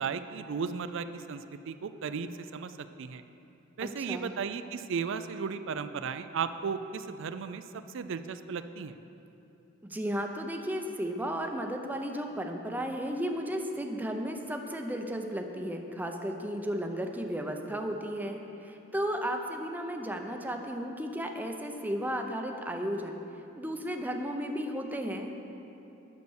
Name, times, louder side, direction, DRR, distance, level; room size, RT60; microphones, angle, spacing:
voice 1, 0.0-3.2 3.8-7.6 7.9-9.0, right 6 dB, 65° right, 11 dB, 0.4 m, -35 dB
voice 2, 3.8-4.3 9.8-23.2 23.6-25.3, equal, 10° right, 3 dB, 0.6 m, -34 dB
9.5 x 6.8 x 6.3 m, 2.9 s
head